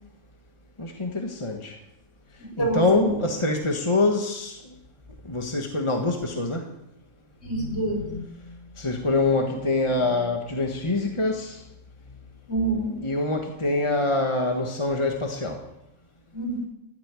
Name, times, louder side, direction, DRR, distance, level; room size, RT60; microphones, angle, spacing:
voice 1, 0.8-1.8 2.6-4.6 5.2-6.7 8.3-11.6 13.0-15.6, left 2 dB, 25° left, 2 dB, 1.5 m, -25 dB
voice 2, 2.6-3.1 7.4-8.2 12.5-12.9 16.3-16.6, right 1 dB, 55° left, -2 dB, 5.8 m, -26 dB
16.0 x 8.3 x 9.7 m, 0.86 s
omnidirectional pair, 1.4 m